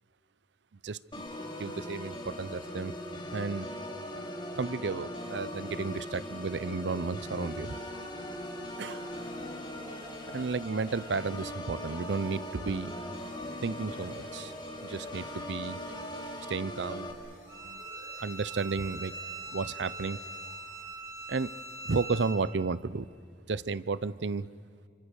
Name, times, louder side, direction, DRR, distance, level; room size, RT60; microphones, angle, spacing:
voice 1, 0.8-1.2 1.6-2.9 3.3-3.7 4.6-7.8 8.8-9.1 10.3-12.9 13.6-14.5 14.8-15.8 16.5-17.1 17.5-17.8 18.2-19.1 19.5-20.2 21.3-21.5 21.8-23.1 23.5-24.5, right 4 dB, 75° right, 19 dB, 0.6 m, -33 dB
Organ, 1.1-17.1, left 1 dB, 25° left, 2.9 m, -40 dB
sound 1, 8.2-22.2, left 1 dB, 50° left, 6.1 m, -56 dB
Bowed string instrument, 17.5-22.4, right 3 dB, 20° right, 3.2 m, -42 dB
29.0 x 26.0 x 6.5 m, 2.5 s
head